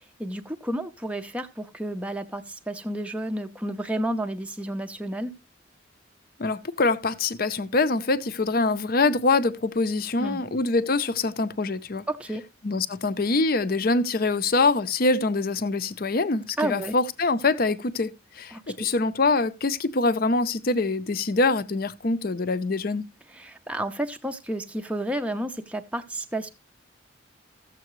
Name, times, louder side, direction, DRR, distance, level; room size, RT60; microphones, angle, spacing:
voice 1, 0.2-5.3 10.2-10.4 12.1-12.4 16.6-16.9 18.5-18.9 23.3-26.5, right 1 dB, 5° right, 0.5 m, -31 dB
voice 2, 6.4-12.0 12.6-23.1, left 3 dB, 50° left, 0.6 m, -24 dB
14.0 x 7.5 x 3.1 m
head